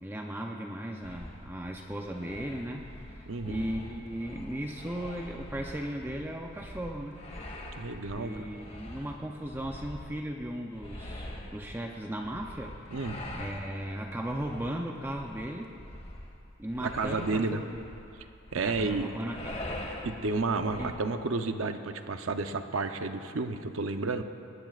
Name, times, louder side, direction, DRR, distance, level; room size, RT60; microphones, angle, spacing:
voice 1, 0.0-7.2 8.1-12.8 13.3-15.7 16.6-17.8 18.5-19.6 20.8-20.9, right 1 dB, 10° right, 1 dB, 0.6 m, -37 dB
sound 1, 1.0-20.9, left 1 dB, 30° left, 1.7 m, -44 dB
voice 2, 3.3-3.7 7.7-8.5 12.9-13.2 16.8-17.6 18.5-19.1 20.0-24.2, right 3 dB, 65° right, 7 dB, 0.7 m, -31 dB
21.5 x 19.0 x 2.5 m, 2.6 s
head